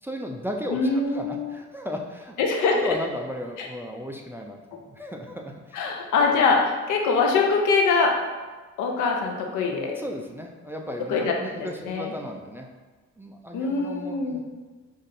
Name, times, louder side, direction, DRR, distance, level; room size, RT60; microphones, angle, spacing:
voice 1, 0.0-2.3 2.7-4.6 4.9-6.3 10.0-12.7 13.2-14.4, equal, 10° right, 1 dB, 0.3 m, -35 dB
voice 2, 0.7-1.5 2.4-2.9 3.6-3.7 5.7-8.1 8.8-10.0 11.1-11.3 11.9-12.1 13.5-14.4, left 4 dB, 85° left, 1 dB, 0.7 m, -23 dB
5.4 x 2.6 x 2.6 m, 1.3 s
cardioid pair, 90°, 30 cm